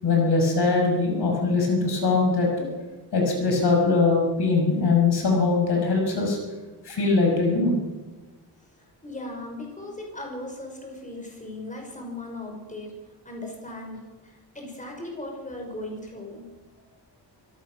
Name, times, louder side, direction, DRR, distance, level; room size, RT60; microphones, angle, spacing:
voice 1, 0.0-2.7 3.1-6.4 6.8-7.7, left 3 dB, 75° left, 1 dB, 6.2 m, -22 dB
voice 2, 9.0-12.9 13.2-16.4, left 1 dB, 20° left, 1 dB, 5.7 m, -37 dB
25.0 x 17.0 x 6.4 m, 1.2 s
wide cardioid pair, 140°, 40 cm